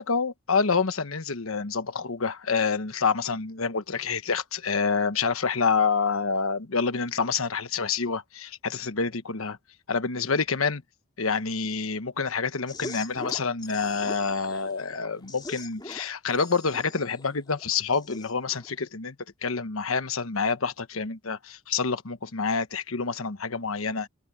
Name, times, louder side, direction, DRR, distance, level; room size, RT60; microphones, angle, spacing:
voice 1, 0.0-9.6 9.9-10.8 11.2-19.1 19.4-24.1, left 5 dB, 80° left, 1.2 m, -27 dB
sound 1, 12.7-18.7, left 2 dB, 20° left, 3.3 m, -42 dB
head